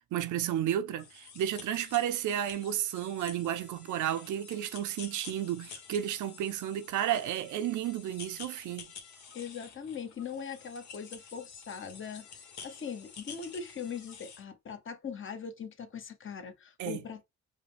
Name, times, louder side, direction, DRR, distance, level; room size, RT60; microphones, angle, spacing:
voice 1, 0.1-8.9 16.8-17.0, right 11 dB, 75° right, 0.6 m, -32 dB
sound 1, 1.0-14.4, left 6 dB, 70° left, 1.5 m, -50 dB
voice 2, 9.3-17.2, left 6 dB, 40° left, 1.0 m, -41 dB
5.0 x 2.2 x 3.4 m
cardioid pair, 90°, 30 cm